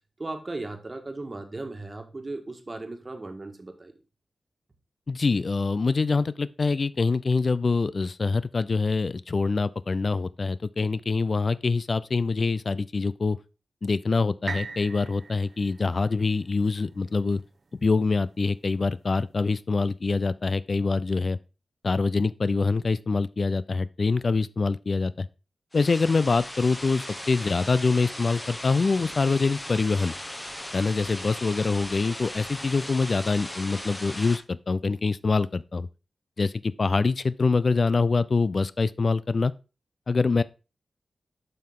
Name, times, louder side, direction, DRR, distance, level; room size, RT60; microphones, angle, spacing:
voice 1, 0.2-3.9, right 2 dB, 35° right, 1.5 m, -36 dB
voice 2, 5.1-13.4 13.8-17.4 17.8-21.4 21.8-25.3 25.7-30.1 30.7-35.9 36.4-39.5 40.1-40.4, left 4 dB, 55° left, 0.3 m, -25 dB
sound 1, 14.5-18.4 19.0-19.1, right 4 dB, 60° right, 0.6 m, -41 dB
sound 2, 25.7-34.4, left 1 dB, 15° left, 1.1 m, -38 dB
7.5 x 5.7 x 3.7 m
cardioid pair, 60°, 0 cm